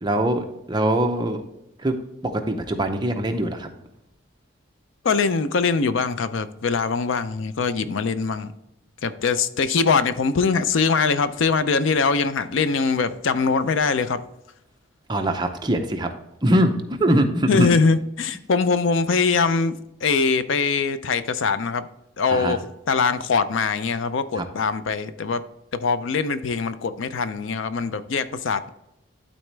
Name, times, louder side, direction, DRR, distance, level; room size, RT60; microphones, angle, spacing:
voice 1, 0.0-1.4 1.8-1.9 2.2-3.7 15.1-16.1 16.4-17.7 22.3-22.6 24.4-24.5, right 1 dB, 20° right, 4 dB, 0.7 m, -22 dB
voice 2, 5.0-8.5 9.0-14.2 17.5-19.8 20.0-21.9 22.2-22.6 22.9-25.4 25.7-28.7, left 4 dB, 70° left, 13 dB, 0.5 m, -22 dB
12.0 x 4.1 x 3.3 m, 0.86 s
head